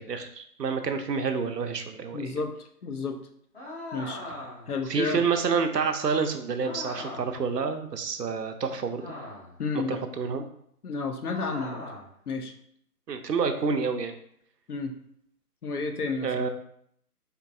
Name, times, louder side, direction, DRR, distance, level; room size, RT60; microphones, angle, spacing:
voice 1, 0.0-2.3 4.9-9.2 9.9-10.4 13.1-14.1 16.2-16.5, right 5 dB, 85° right, 7 dB, 0.7 m, -28 dB
voice 2, 2.1-3.2 3.9-4.4 4.7-5.3 9.6-10.0 10.8-11.8 12.3-12.5 14.7-14.9 15.6-16.5, left 4 dB, 70° left, 6 dB, 0.7 m, -31 dB
sound 1, 3.5-4.8 6.6-7.4 9.0-9.6 11.3-12.1, left 1 dB, 40° left, 1.4 m, -40 dB
4.5 x 2.7 x 2.6 m, 0.68 s
figure-of-eight pair, 165°, 47 cm